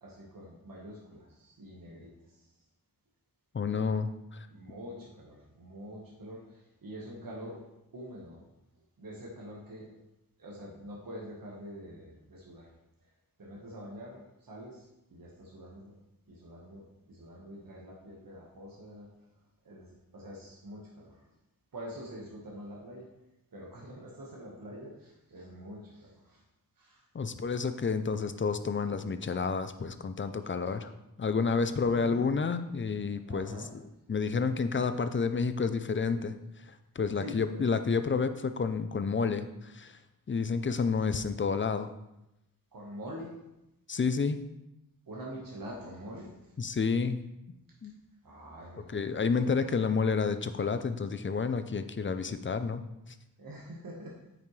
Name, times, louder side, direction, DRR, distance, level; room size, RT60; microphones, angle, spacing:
voice 1, 0.0-2.5 4.5-7.6 7.9-8.4 9.0-9.9 10.4-12.7 13.0-13.1 13.4-15.9 16.3-19.3 19.6-21.2 21.7-23.1 23.5-26.4 26.8-27.0 30.5-30.9 31.4-32.3 33.3-33.7 37.2-37.7 42.7-43.4 45.1-46.6 48.2-49.7 53.4-54.2, equal, 70° right, -3 dB, 1.5 m, -46 dB
voice 2, 3.5-4.4 27.1-30.9 31.2-33.8 34.1-36.4 37.0-40.0 40.3-41.9 43.9-44.4 46.6-47.3 47.8-48.0 48.9-52.9, left 5 dB, 35° left, 10 dB, 0.5 m, -30 dB
8.7 x 5.9 x 3.2 m, 0.89 s
wide cardioid pair, 110°, 35 cm